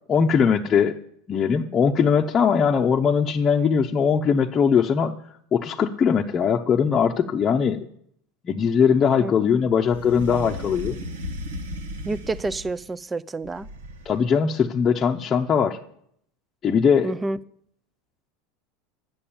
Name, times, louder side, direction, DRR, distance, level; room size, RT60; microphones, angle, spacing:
voice 1, 0.1-1.0 1.3-5.2 5.5-7.9 8.4-11.0 14.0-15.8 16.6-17.1, left 6 dB, 30° left, 0.8 m, -20 dB
sound 1, 9.9-12.9 13.4-14.3, equal, 90° right, 1.6 m, -35 dB
voice 2, 12.0-13.7 17.0-17.4, right 2 dB, 20° right, 0.5 m, -28 dB
10.0 x 7.8 x 8.7 m
hypercardioid pair, 95°, 0 cm